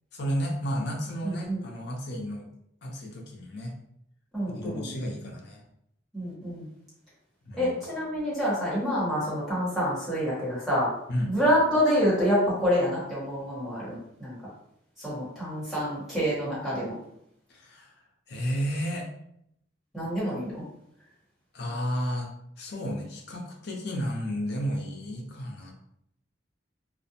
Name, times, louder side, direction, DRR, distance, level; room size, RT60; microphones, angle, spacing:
voice 1, 0.1-2.5 2.8-3.7 4.5-5.6 7.4-7.8 11.1-11.4 17.5-17.9 18.3-19.1 21.5-22.3 22.6-25.7, equal, 55° left, 0 dB, 0.6 m, -32 dB
voice 2, 1.2-1.6 4.3-4.9 6.1-6.7 7.6-10.9 11.3-14.4 15.0-16.9 19.9-20.6, equal, ahead, -10 dB, 1.2 m, -27 dB
2.5 x 2.1 x 2.8 m, 0.74 s
head